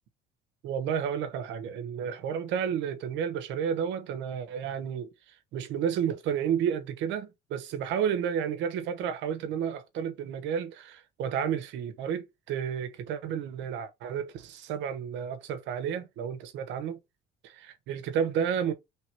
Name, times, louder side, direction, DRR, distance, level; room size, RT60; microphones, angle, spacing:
voice 1, 0.6-5.1 5.5-17.0 17.5-18.7, right 8 dB, 75° right, 0.8 m, -31 dB
3.3 x 2.9 x 4.5 m
supercardioid pair, 80°, 19 cm